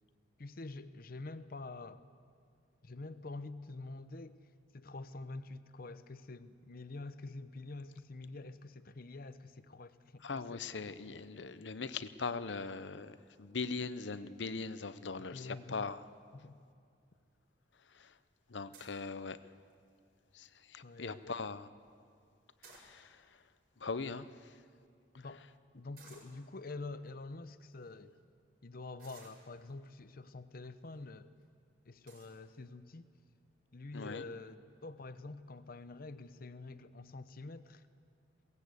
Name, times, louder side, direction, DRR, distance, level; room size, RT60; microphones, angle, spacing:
voice 1, 0.4-2.0 2.8-4.4 4.7-10.6 15.3-15.9 16.3-16.6 20.8-21.4 25.1-25.4 25.7-28.2 28.6-31.3 31.8-33.1 33.7-37.8, left 3 dB, 55° left, 12 dB, 0.8 m, -47 dB
voice 2, 10.2-16.0 17.9-18.2 18.5-19.4 20.3-21.7 22.6-23.4 23.8-24.5 33.9-34.2, left 4 dB, 85° left, 13 dB, 0.8 m, -41 dB
sound 1, 18.7-19.1 19.7-20.0 20.4-20.5 20.8-21.1 22.4-23.3 24.0-24.1 24.3-24.5 26.0-26.4 27.1-27.2 27.7-27.9 29.0-29.9 30.6-31.0 31.4-31.5 32.1-32.4, right 4 dB, 55° right, 5.2 m, -58 dB
21.5 x 18.0 x 8.3 m, 2.3 s
head